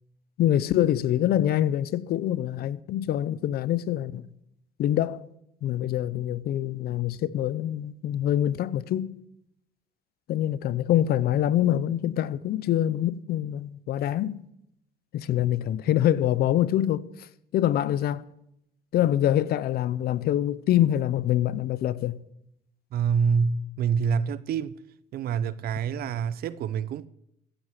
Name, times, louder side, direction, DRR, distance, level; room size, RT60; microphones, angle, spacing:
voice 1, 0.4-4.3 4.8-5.3 5.6-9.1 10.3-14.4 15.1-18.2 18.9-22.2, left 12 dB, 65° left, 0.7 m, -25 dB
voice 2, 22.9-24.8 25.1-27.1, right 6 dB, 65° right, 0.8 m, -26 dB
15.0 x 7.9 x 8.2 m
cardioid pair, 110°, 17 cm